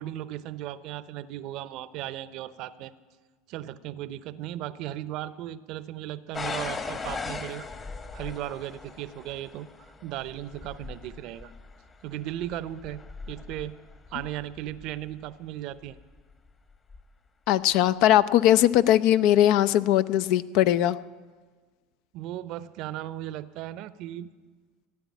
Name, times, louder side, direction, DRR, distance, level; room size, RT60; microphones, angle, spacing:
voice 1, 0.0-2.9 3.5-7.7 8.1-9.7 10.0-11.5 12.0-13.8 14.1-16.0 22.1-24.3, right 13 dB, 60° right, 16 dB, 0.7 m, -36 dB
sound 1, 6.3-15.1 15.9-16.3 16.9-17.0, left 4 dB, 30° left, 1.4 m, -39 dB
voice 2, 17.5-21.0, left 12 dB, 60° left, 15 dB, 0.5 m, -20 dB
15.5 x 9.6 x 8.3 m, 1.4 s
hypercardioid pair, 80°, 0 cm